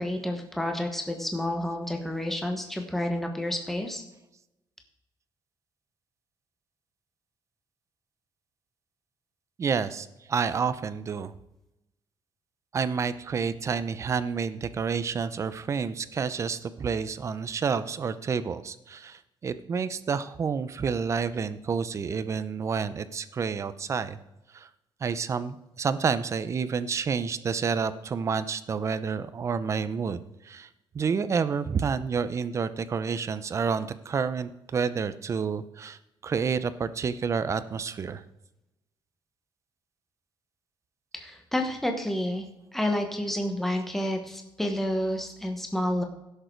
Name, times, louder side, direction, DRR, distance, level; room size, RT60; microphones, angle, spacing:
voice 1, 0.0-4.0 41.1-42.5 42.7-46.0, left 1 dB, 5° left, 3 dB, 1.2 m, -29 dB
voice 2, 9.6-11.3 12.7-24.2 24.5-24.7 25.0-30.7 30.9-38.2, right 6 dB, 35° right, 14 dB, 0.6 m, -29 dB
16.5 x 6.7 x 4.6 m, 0.92 s
cardioid pair, 160°, 9 cm